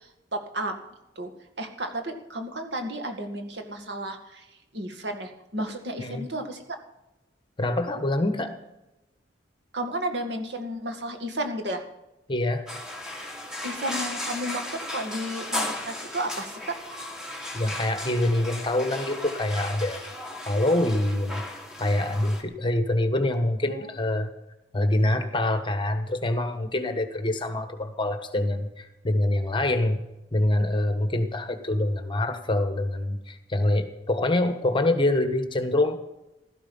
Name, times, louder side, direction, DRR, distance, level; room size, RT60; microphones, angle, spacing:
voice 1, 0.3-0.8 1.2-1.3 1.6-4.5 4.7-6.8 9.7-11.8 13.6-16.8 23.6-23.9, right 1 dB, 70° right, 5 dB, 2.1 m, -32 dB
voice 2, 7.6-8.5 12.3-12.7 17.5-20.0 20.5-21.4 21.8-24.3 24.7-30.0 30.3-36.0, left 1 dB, 25° left, 8 dB, 1.3 m, -25 dB
sound 1, 12.7-22.4, left 1 dB, 5° right, 2.1 m, -35 dB
16.0 x 12.5 x 5.6 m, 0.96 s
head